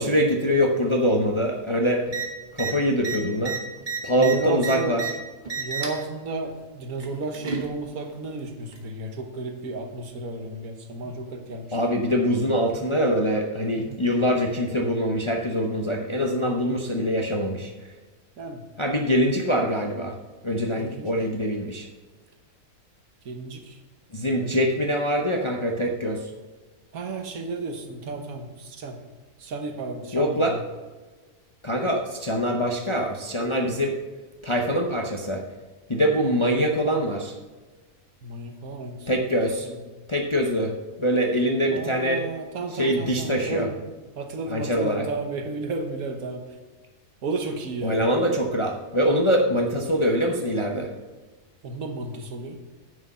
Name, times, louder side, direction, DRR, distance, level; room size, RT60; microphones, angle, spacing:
voice 1, 0.0-2.1 2.5-3.6 4.0-5.1 11.7-17.7 18.8-20.1 20.4-21.9 24.1-26.3 30.1-30.5 31.6-34.0 34.4-35.4 35.9-37.3 39.1-39.7 40.1-40.7 41.0-42.3 42.7-43.7 44.5-45.1 47.8-50.9, equal, 30° left, 1 dB, 0.6 m, -24 dB
sound 1, 2.1-2.2 2.5-2.7 3.0-5.1 5.4-6.0 7.0-7.7 8.7-8.8, right 5 dB, 35° right, 1.3 m, -30 dB
voice 2, 4.1-5.0 5.6-11.7 13.7-14.0 18.4-18.6 20.7-21.1 23.2-23.8 26.9-29.0 29.4-30.6 38.2-39.1 39.6-39.8 41.7-43.8 44.2-46.4 47.2-48.0 51.6-52.6, right 3 dB, 75° right, 5 dB, 1.5 m, -33 dB
9.4 x 6.3 x 5.5 m, 1.3 s
omnidirectional pair, 1.5 m